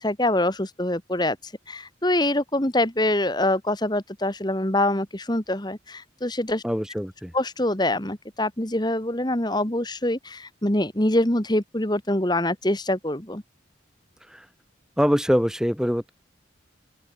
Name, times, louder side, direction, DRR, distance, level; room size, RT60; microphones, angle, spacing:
voice 1, 0.0-6.6 7.3-13.4, left 1 dB, 20° left, 1.9 m, -25 dB
voice 2, 6.6-7.3 14.3-14.5 15.0-16.1, equal, 5° right, 7.5 m, -23 dB
open air
head